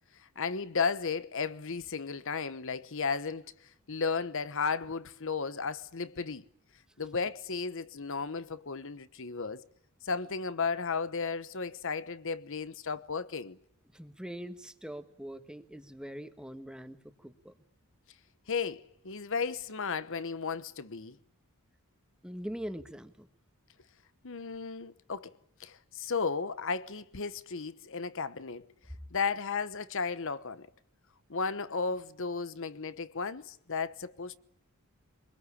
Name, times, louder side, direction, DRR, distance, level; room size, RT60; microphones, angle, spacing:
voice 1, 0.4-3.5 3.9-6.4 7.0-9.6 10.0-13.6 18.5-21.1 24.2-28.6 29.1-30.7 31.3-34.4, left 5 dB, 60° left, 1.1 m, -34 dB
voice 2, 13.9-17.5 22.2-23.3, equal, 5° right, 1.5 m, -42 dB
24.5 x 22.5 x 9.9 m
head